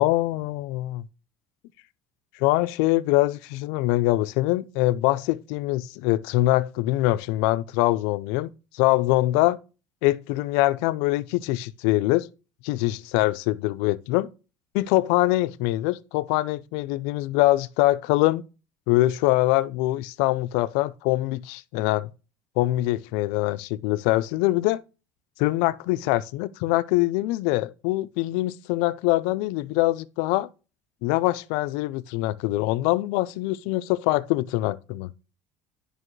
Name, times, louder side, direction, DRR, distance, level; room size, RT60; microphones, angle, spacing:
voice 1, 0.0-1.1 2.4-9.6 10.0-12.3 12.6-14.3 14.7-18.4 18.9-22.1 22.6-24.8 25.4-30.5 31.0-35.1, left 18 dB, 80° left, 0.5 m, -23 dB
9.9 x 5.3 x 3.1 m
cardioid pair, 140°, 8 cm